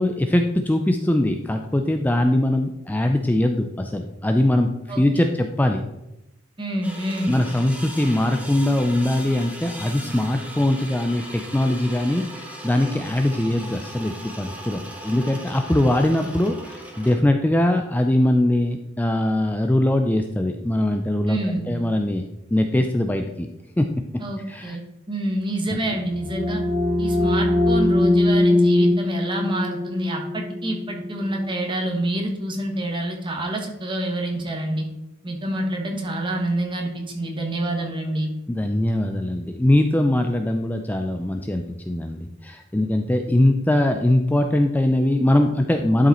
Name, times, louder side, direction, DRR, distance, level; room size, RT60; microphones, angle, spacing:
voice 1, 0.0-4.7 5.0-5.8 7.3-21.4 21.7-22.2 22.5-23.5 23.8-23.9 24.5-24.8 38.5-46.1, left 1 dB, 10° left, 5 dB, 0.4 m, -21 dB
voice 2, 4.9-5.3 6.6-7.4 16.2-16.3 21.3-21.7 24.2-24.8 25.1-26.6 27.0-34.9 35.2-38.3, right 1 dB, 25° right, 1 dB, 1.5 m, -27 dB
sound 1, 6.8-17.2, equal, 5° right, 1.4 m, -38 dB
sound 2, 25.8-31.4, left 1 dB, 35° left, 1.6 m, -21 dB
11.0 x 5.0 x 4.3 m, 0.90 s
head